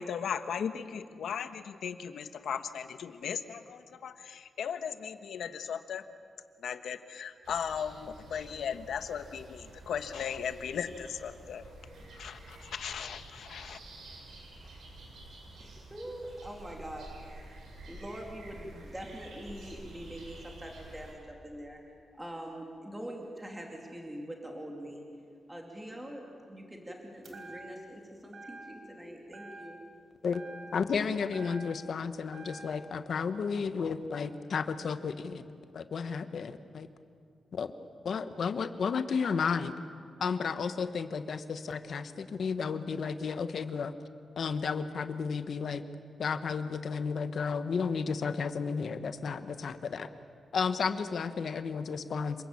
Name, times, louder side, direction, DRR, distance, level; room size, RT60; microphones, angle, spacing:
voice 1, 0.0-6.0 6.6-11.7 12.2-13.8, left 7 dB, 80° left, 10 dB, 1.2 m, -37 dB
sound 1, 7.4-21.1, right 1 dB, 75° right, 7.4 m, -50 dB
voice 2, 15.6-17.5 17.9-21.8 22.1-25.0 25.5-29.8, right 1 dB, 10° right, 0 dB, 2.7 m, -44 dB
sound 2, 27.2-28.0 28.3-29.0 29.3-30.0 30.3-32.0 32.3-32.9, right 2 dB, 45° right, 4.2 m, -49 dB
voice 3, 30.7-35.4 35.7-36.9 37.5-37.7 38.0-39.7 40.2-43.9 44.4-45.8 46.2-50.1 50.5-52.4, left 5 dB, 50° left, 10 dB, 1.2 m, -32 dB
27.5 x 21.0 x 8.6 m, 2.3 s
wide cardioid pair, 175°, 0 cm